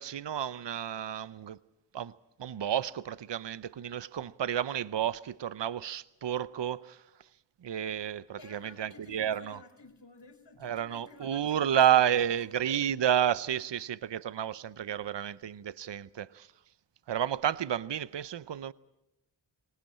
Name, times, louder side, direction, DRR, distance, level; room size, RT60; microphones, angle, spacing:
voice 1, 0.0-1.6 1.9-2.1 2.4-7.0 7.6-9.6 10.6-16.5 17.1-18.7, right 10 dB, 65° right, 0.7 m, -30 dB
voice 2, 8.4-12.9, left 3 dB, 65° left, 4.6 m, -53 dB
20.0 x 19.5 x 8.7 m
cardioid pair, 45°, 46 cm